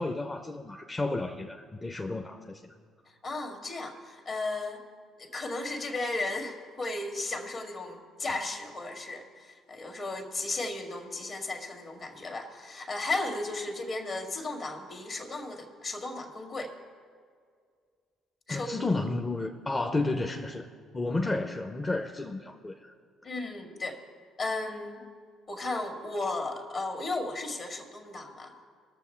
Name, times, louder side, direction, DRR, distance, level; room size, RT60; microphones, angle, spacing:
voice 1, 0.0-2.6 18.5-20.7 20.9-22.9, left 2 dB, 25° left, 3 dB, 0.8 m, -32 dB
voice 2, 3.2-4.8 5.2-16.7 18.5-19.0 23.2-24.0 24.4-25.0 25.5-28.5, left 2 dB, 50° left, 4 dB, 2.0 m, -35 dB
20.5 x 7.0 x 4.5 m, 2.1 s
hypercardioid pair, 55°, 0 cm